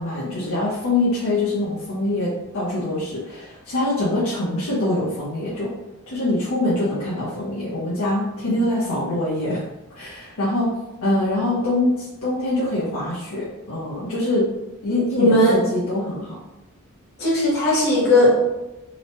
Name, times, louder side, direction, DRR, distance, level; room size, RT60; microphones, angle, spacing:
voice 1, 0.0-5.7 6.1-9.6 9.9-10.7 11.0-14.5 14.8-16.4, left 1 dB, 75° left, -8 dB, 0.6 m, -24 dB
voice 2, 15.2-15.6 17.2-18.3, left 1 dB, 50° left, -5 dB, 1.0 m, -17 dB
2.9 x 2.1 x 2.9 m, 0.99 s
head